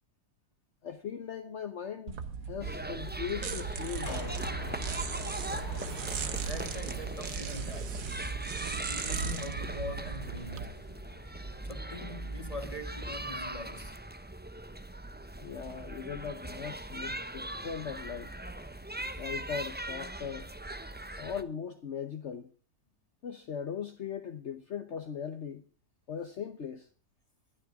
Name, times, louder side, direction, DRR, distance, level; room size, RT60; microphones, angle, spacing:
voice 1, 0.8-2.2 2.5-4.4 15.4-18.3 19.2-20.5 21.2-22.5 23.2-25.6 26.1-26.9, left 7 dB, 50° left, 1.2 m, -39 dB
sound 1, 2.1-10.6, right 6 dB, 85° right, 1.8 m, -37 dB
sound 2, 2.6-21.4, right 1 dB, 10° right, 0.6 m, -40 dB
sound 3, 4.0-11.8, left 1 dB, 70° left, 4.9 m, -46 dB
voice 2, 6.4-8.1 8.4-10.9 11.6-14.0, left 2 dB, 20° left, 2.6 m, -43 dB
20.0 x 12.5 x 3.6 m
omnidirectional pair, 1.6 m